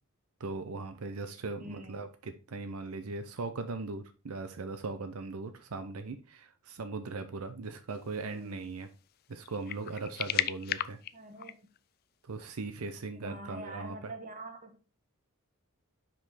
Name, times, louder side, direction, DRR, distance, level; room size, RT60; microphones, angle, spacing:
voice 1, 0.4-8.9 9.3-11.0 12.3-14.0, right 3 dB, 90° right, 0.6 m, -39 dB
voice 2, 1.6-2.0 8.2-8.6 11.1-11.6 13.1-14.8, right 1 dB, 40° right, 1.3 m, -45 dB
sound 1, 8.4-8.5 9.3-11.8, left 11 dB, 45° left, 0.3 m, -34 dB
5.6 x 5.1 x 4.1 m
head